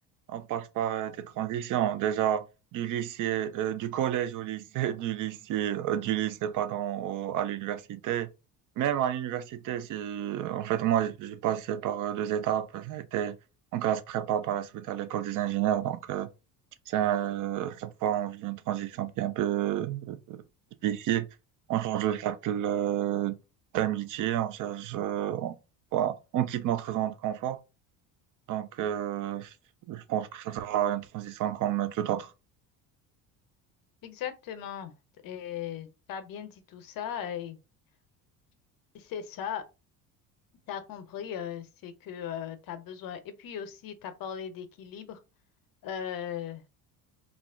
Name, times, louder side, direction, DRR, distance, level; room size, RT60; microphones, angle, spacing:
voice 1, 0.3-2.5 2.7-8.3 8.8-13.4 13.7-16.3 16.9-20.4 20.8-21.3 21.7-23.4 23.7-25.6 25.9-27.6 28.5-29.5 29.9-32.3, right 11 dB, 45° right, 0.5 m, -30 dB
voice 2, 34.0-34.9 35.2-37.6 38.9-39.6 40.7-45.2 45.8-46.8, left 9 dB, 45° left, 0.7 m, -38 dB
2.4 x 2.0 x 3.5 m
hypercardioid pair, 65°, 46 cm